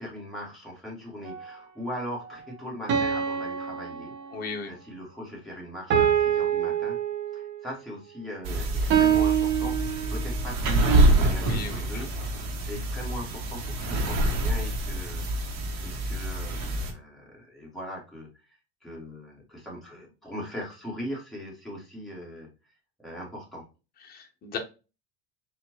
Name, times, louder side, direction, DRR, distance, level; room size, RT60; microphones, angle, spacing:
voice 1, 0.0-4.1 4.7-7.0 7.3-12.1 12.6-15.3 15.8-22.5 23.0-23.6, left 1 dB, ahead, -4 dB, 1.6 m, -40 dB
sound 1, 1.3-1.4 2.9-4.6 5.9-7.6 8.9-10.4, right 9 dB, 35° right, 0.8 m, -25 dB
voice 2, 4.3-4.7 11.4-12.3 24.0-24.6, left 5 dB, 30° left, 3 dB, 0.8 m, -37 dB
sound 2, 8.4-16.9, right 1 dB, 60° right, 1.1 m, -26 dB
4.3 x 2.4 x 2.8 m, 0.30 s
supercardioid pair, 125°, 32 cm